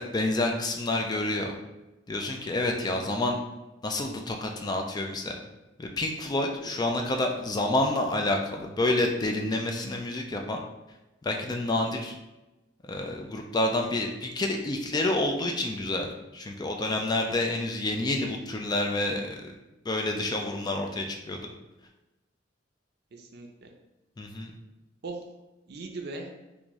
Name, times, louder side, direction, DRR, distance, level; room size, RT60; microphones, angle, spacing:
voice 1, 0.0-1.5 2.1-3.4 3.8-5.4 5.8-10.6 11.2-12.2 12.9-19.5 19.9-21.5 24.2-24.5, left 2 dB, 20° left, 2 dB, 0.3 m, -28 dB
voice 2, 23.1-23.7 25.0-25.2 25.7-26.3, right 3 dB, 60° right, 2 dB, 0.5 m, -40 dB
3.5 x 2.6 x 3.0 m, 1.0 s
head